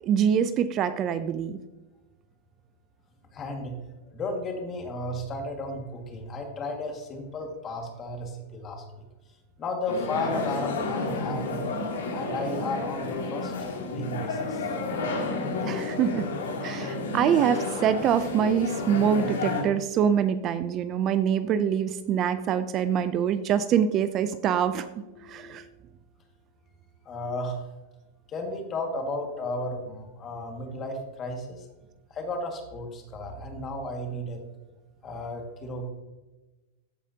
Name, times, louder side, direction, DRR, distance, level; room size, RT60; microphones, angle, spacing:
voice 1, 0.0-1.6 15.6-16.3 16.6-25.0 25.3-25.6, right 8 dB, 35° right, 12 dB, 0.4 m, -25 dB
voice 2, 3.3-3.7 4.1-8.8 9.6-11.6 12.1-13.5 13.9-14.7 25.1-25.7 27.1-27.6 28.3-31.7 32.1-34.4 35.0-35.9, left 1 dB, 30° left, 3 dB, 1.8 m, -34 dB
sound 1, 9.9-19.6, left 3 dB, 90° left, 2.0 m, -31 dB
14.0 x 4.9 x 2.8 m, 1.1 s
hypercardioid pair, 125°, 0 cm